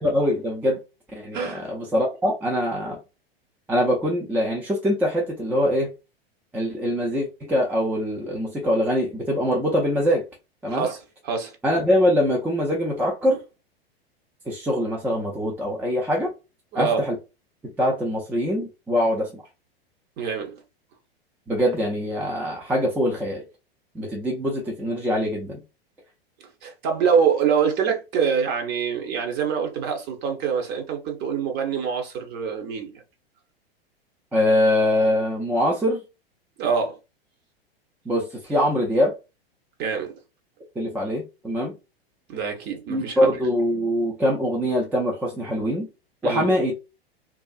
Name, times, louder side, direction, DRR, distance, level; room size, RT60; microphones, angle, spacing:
voice 1, 0.0-0.8 1.2-3.0 3.7-5.9 6.5-10.2 10.6-10.9 11.6-13.4 14.5-16.3 16.7-17.1 17.8-19.3 21.5-23.5 23.9-25.6 34.3-36.0 38.1-39.1 40.8-41.8 42.9-45.9 46.2-46.8, equal, 5° right, 0.4 m, -23 dB
voice 2, 10.7-11.5 16.7-17.0 20.2-20.6 26.4-32.9 36.6-37.0 39.8-40.1 42.3-43.4 46.2-46.5, right 6 dB, 35° right, 0.8 m, -25 dB
2.5 x 2.5 x 2.3 m
hypercardioid pair, 100°, 30 cm